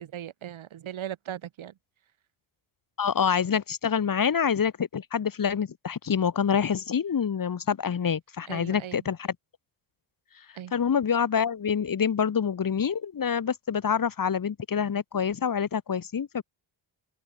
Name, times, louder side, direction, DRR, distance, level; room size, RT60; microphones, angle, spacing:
voice 1, 0.0-1.8 8.5-9.0 10.5-10.7, right 10 dB, 85° right, 4.6 m, -38 dB
voice 2, 3.0-9.2 10.7-16.4, left 7 dB, 45° left, 1.7 m, -26 dB
open air
cardioid pair, 90°, 47 cm